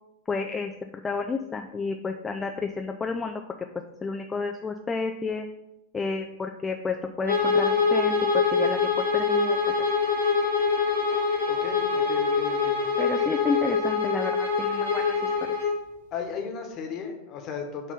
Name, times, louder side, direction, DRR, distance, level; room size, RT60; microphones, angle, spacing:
voice 1, 0.3-0.7 1.0-3.4 4.0-5.5 5.9-9.6 13.0-15.1, left 4 dB, 15° left, 5 dB, 0.4 m, -30 dB
Bowed string instrument, 7.2-15.8, left 5 dB, 90° right, 1.8 m, -24 dB
voice 2, 11.5-12.8 16.1-17.9, left 6 dB, 35° left, 3 dB, 1.2 m, -35 dB
6.5 x 3.1 x 5.6 m, 0.90 s
figure-of-eight pair, 90°, 0 cm